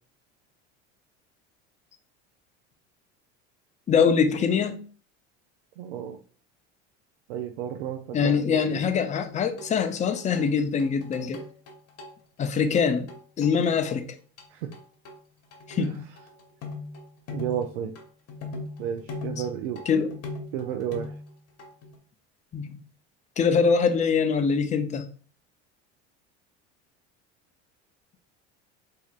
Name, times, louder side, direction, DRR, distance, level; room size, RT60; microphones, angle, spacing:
voice 1, 3.9-4.8 8.1-11.4 12.4-13.1 13.4-14.1 15.7-16.1 19.9-20.1 22.5-22.8 23.4-25.1, left 6 dB, 25° left, 0.5 m, -23 dB
voice 2, 5.8-6.2 7.3-9.1 14.5-14.7 15.8-16.0 17.3-17.9 18.8-19.8 20.5-21.2, right 9 dB, 90° right, 0.5 m, -32 dB
sound 1, 9.3-10.5 10.8-12.1 12.4-12.5 12.8-13.9 14.4-14.5 14.7-15.2 15.5-21.3 21.6-22.0, left 2 dB, 50° left, 1.0 m, -39 dB
4.3 x 2.8 x 2.4 m
supercardioid pair, 100°, 32 cm